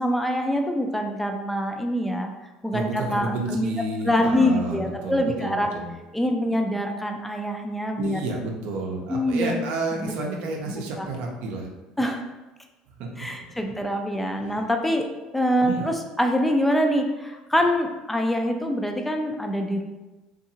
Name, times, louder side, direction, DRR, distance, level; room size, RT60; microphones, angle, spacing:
voice 1, 0.0-2.3 2.6-3.7 4.0-5.7 6.1-8.2 9.1-9.6 10.0-10.1 10.7-11.1 12.0-12.2 13.2-19.8, equal, 5° left, 4 dB, 0.4 m, -25 dB
voice 2, 2.7-5.9 8.0-11.7 13.2-13.3 15.6-15.8, right 2 dB, 70° right, 0 dB, 0.6 m, -30 dB
2.7 x 2.4 x 2.7 m, 1.1 s
supercardioid pair, 85°, 2 cm